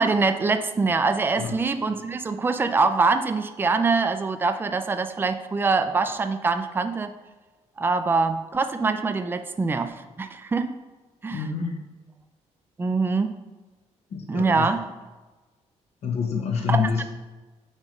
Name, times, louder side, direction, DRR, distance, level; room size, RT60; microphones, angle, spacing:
voice 1, 0.0-7.1 7.8-10.7 11.2-11.4 12.8-13.4 14.3-14.8 16.7-17.1, right 4 dB, 15° right, 8 dB, 0.4 m, -24 dB
voice 2, 11.3-11.8 14.1-14.7 16.0-17.0, left 6 dB, 60° left, 2 dB, 1.1 m, -27 dB
8.4 x 3.2 x 5.3 m, 1.2 s
cardioid pair, 130°, 12 cm